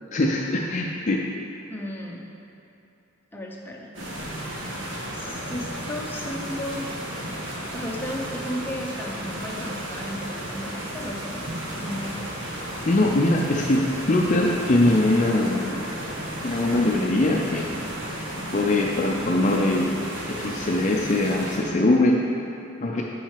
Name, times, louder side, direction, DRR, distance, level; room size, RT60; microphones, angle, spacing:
voice 1, 0.1-1.2 12.9-15.8 16.4-17.7 18.5-19.9 20.3-22.2 22.8-23.0, left 2 dB, 40° left, -1 dB, 0.5 m, -22 dB
voice 2, 1.7-2.3 3.3-3.9 4.2-4.8 5.1-6.9 7.7-12.2, left 1 dB, 10° left, -3 dB, 0.9 m, -35 dB
sound 1, 3.9-21.6, right 1 dB, 90° right, 1.5 m, -33 dB
6.1 x 5.6 x 6.7 m, 2.9 s
head